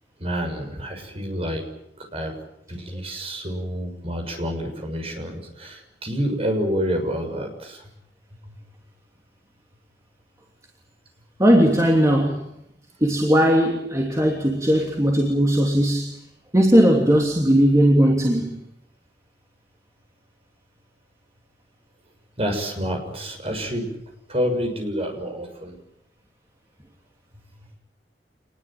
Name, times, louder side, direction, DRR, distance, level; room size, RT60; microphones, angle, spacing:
voice 1, 0.2-1.6 2.1-2.3 2.7-7.8 22.4-23.9 24.3-25.7, equal, 35° right, 6.6 m, -28 dB
voice 2, 11.4-12.4 13.0-16.1 16.5-18.6, equal, 20° right, 3.1 m, -18 dB
27.0 x 20.5 x 9.1 m
head